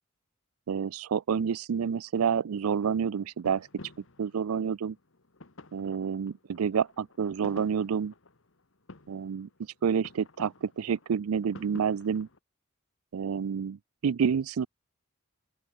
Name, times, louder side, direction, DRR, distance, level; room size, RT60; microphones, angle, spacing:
voice 1, 0.7-3.7 4.2-5.0 5.7-8.1 9.1-9.5 9.8-12.3 13.1-14.7, right 7 dB, 80° right, 0.4 m, -29 dB
sound 1, 2.6-12.4, left 2 dB, 60° left, 1.6 m, -52 dB
open air
head